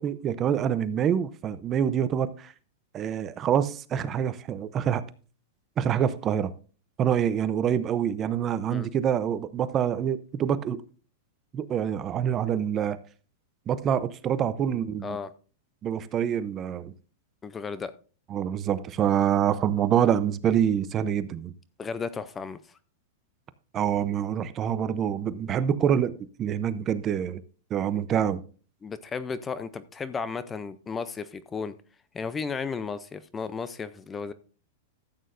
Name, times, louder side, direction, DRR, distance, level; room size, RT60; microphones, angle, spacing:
voice 1, 0.0-2.5 2.9-5.0 5.8-6.5 7.0-10.8 11.5-13.0 13.7-15.2 15.8-16.9 18.3-21.5 23.7-27.4 27.7-28.4, right 9 dB, 25° right, 0.6 m, -26 dB
voice 2, 17.4-17.9 21.8-22.6 28.8-31.7 32.1-34.3, left 5 dB, 15° left, 0.5 m, -34 dB
13.5 x 8.5 x 2.6 m
supercardioid pair, 150°, 0 cm